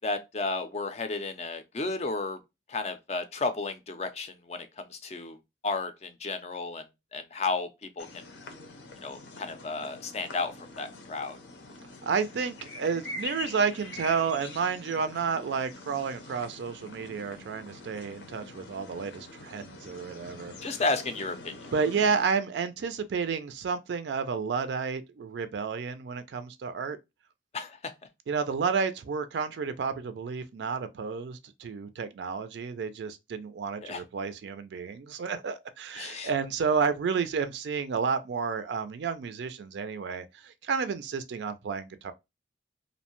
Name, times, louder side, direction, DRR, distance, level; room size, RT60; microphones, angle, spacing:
voice 1, 0.0-2.4 2.7-5.4 5.6-6.8 7.1-7.7 8.0-8.2 9.0-11.4 20.6-21.5 27.5-27.9 33.8-34.0 35.9-36.3, left 3 dB, 35° left, 0.4 m, -33 dB
sound 1, 8.0-22.3, left 3 dB, 80° left, 0.6 m, -45 dB
voice 2, 12.0-20.8 21.7-27.0 28.3-42.1, right 5 dB, 75° right, 0.4 m, -31 dB
2.6 x 2.1 x 2.9 m
head